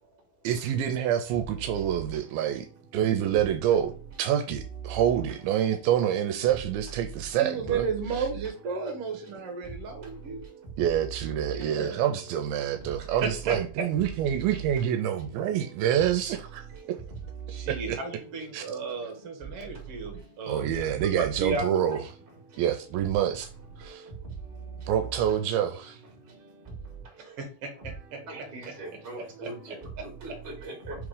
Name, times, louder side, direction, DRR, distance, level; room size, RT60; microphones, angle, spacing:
voice 1, 0.4-2.7 2.9-7.9 8.2-8.3 10.8-16.6 17.7-18.0 18.5-18.6 20.5-22.0 22.6-23.5 23.8-24.1 24.9-26.0, right 10 dB, 80° right, 2.3 m, -27 dB
voice 2, 7.4-10.4 11.5-12.0 13.1-13.9 17.5-22.0 27.2-28.8 29.2-29.5 30.0-30.1, right 4 dB, 55° right, 1.9 m, -34 dB
voice 3, 28.3-30.3 30.6-31.0, right 2 dB, 20° right, 1.9 m, -40 dB
5.3 x 3.6 x 4.9 m
omnidirectional pair, 4.3 m